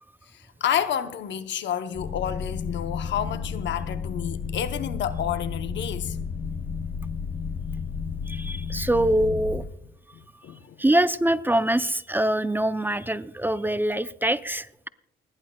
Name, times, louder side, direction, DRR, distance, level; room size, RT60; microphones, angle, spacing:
voice 1, 0.6-6.2 10.2-10.8, left 9 dB, 65° left, 0.8 m, -30 dB
sound 1, 1.9-9.6, left 6 dB, 45° left, 2.9 m, -32 dB
voice 2, 8.3-9.6 10.8-14.9, right 1 dB, 10° right, 0.5 m, -24 dB
29.0 x 10.5 x 2.2 m
cardioid pair, 90°, 20 cm